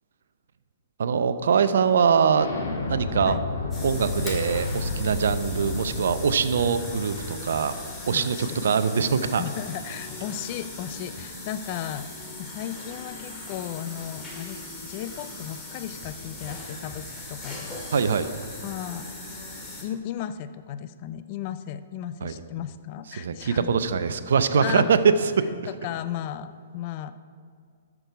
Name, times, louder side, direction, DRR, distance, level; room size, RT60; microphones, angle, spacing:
voice 1, 1.0-2.5 2.9-3.4 3.8-7.8 8.1-9.4 17.9-18.3 22.2-22.3 23.2-25.5, right 6 dB, 65° right, 12 dB, 0.6 m, -23 dB
Explosion, 2.3-7.8, left 3 dB, 70° left, 2.0 m, -32 dB
sound 1, 3.7-19.8, left 2 dB, 15° left, 2.2 m, -39 dB
voice 2, 8.1-8.6 9.2-12.1 12.4-17.8 18.6-19.4 19.8-23.7 24.6-24.9 25.7-27.1, left 10 dB, 40° left, 12 dB, 0.5 m, -35 dB
13.0 x 6.1 x 4.7 m, 2.2 s
figure-of-eight pair, 120°, 0 cm